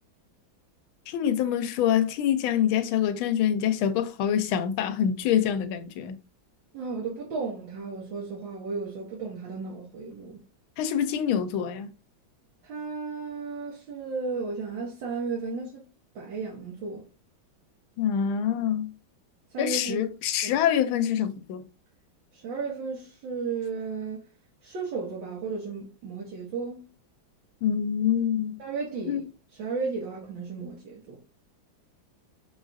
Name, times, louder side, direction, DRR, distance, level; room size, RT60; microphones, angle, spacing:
voice 1, 1.1-6.2 10.8-11.9 18.0-18.9 19.6-21.7 27.6-28.6 29.1-29.2, left 9 dB, 85° left, 1.4 m, -25 dB
voice 2, 6.7-10.4 12.6-15.8 16.1-17.1 19.5-20.1 20.4-20.6 22.3-24.2 24.6-26.9 28.6-29.2 29.5-31.2, right 4 dB, 70° right, 1.6 m, -34 dB
6.2 x 2.4 x 2.5 m
omnidirectional pair, 2.2 m